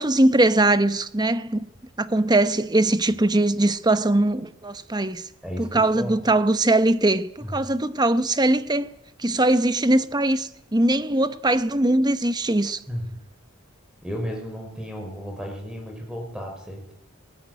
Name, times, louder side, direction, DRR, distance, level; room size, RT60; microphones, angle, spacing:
voice 1, 0.0-1.6 2.0-5.2 5.6-8.9 9.2-12.8, right 2 dB, 20° right, 1.0 m, -21 dB
voice 2, 5.4-6.2 7.4-7.5 12.9-13.2 14.0-16.9, equal, 5° right, 5.6 m, -33 dB
20.5 x 20.0 x 9.7 m
head